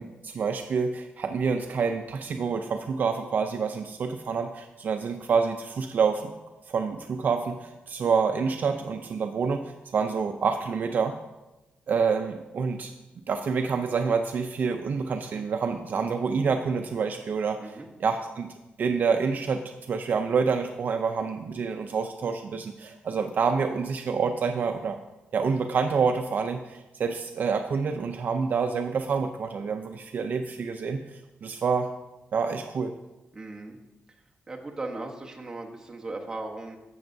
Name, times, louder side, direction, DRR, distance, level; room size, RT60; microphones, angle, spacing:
voice 1, 0.0-6.3 6.7-11.1 11.9-12.9 13.3-18.5 18.8-25.0 25.3-31.9 32.3-33.0, right 5 dB, 55° right, 6 dB, 0.5 m, -27 dB
voice 2, 33.3-33.8 34.5-36.8, right 2 dB, 15° right, 0 dB, 1.0 m, -37 dB
12.0 x 7.7 x 2.7 m, 1.0 s
wide cardioid pair, 145°, 4 cm